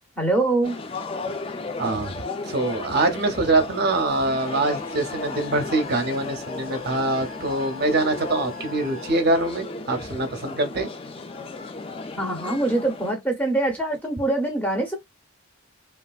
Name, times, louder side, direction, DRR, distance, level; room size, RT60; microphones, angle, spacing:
voice 1, 0.2-0.8 12.2-15.0, right 2 dB, 5° left, 0.8 m, -24 dB
sound 1, 0.6-13.1, left 3 dB, 25° left, 0.3 m, -35 dB
voice 2, 1.8-10.9, right 2 dB, 45° right, 0.6 m, -24 dB
sound 2, 4.1-9.1, left 4 dB, 40° left, 1.3 m, -41 dB
3.2 x 2.4 x 2.3 m
head